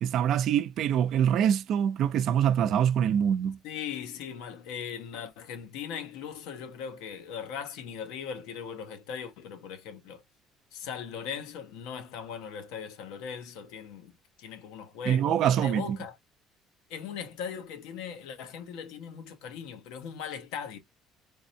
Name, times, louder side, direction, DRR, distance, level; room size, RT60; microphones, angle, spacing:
voice 1, 0.0-3.6 15.1-16.0, right 9 dB, 65° right, 0.5 m, -25 dB
voice 2, 3.6-10.2 10.7-16.1 16.9-20.8, left 7 dB, 90° left, 1.0 m, -39 dB
3.6 x 3.2 x 2.7 m
cardioid pair, 110°, 0 cm